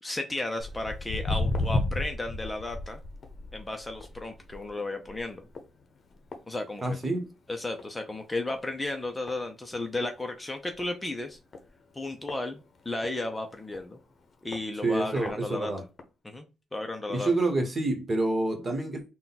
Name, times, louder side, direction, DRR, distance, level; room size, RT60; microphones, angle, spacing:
voice 1, 0.0-3.0 3.5-5.4 6.5-7.0 7.5-11.4 11.9-14.0 14.4-15.7 16.2-16.5 16.7-17.3, left 2 dB, 15° left, 0.6 m, -34 dB
Walk footsteps, 0.6-7.3 7.6-7.9 8.5-8.6 9.3-9.4 9.7-9.8 10.0-10.1 10.7-10.9 11.5-13.1 13.7-13.8 14.5-14.6 15.0-15.3 16.0-16.1, left 2 dB, 45° left, 0.9 m, -33 dB
voice 2, 6.8-7.3 14.8-15.8 17.1-19.0, right 2 dB, 30° right, 1.4 m, -28 dB
3.7 x 2.3 x 4.1 m
cardioid pair, 90°, 0 cm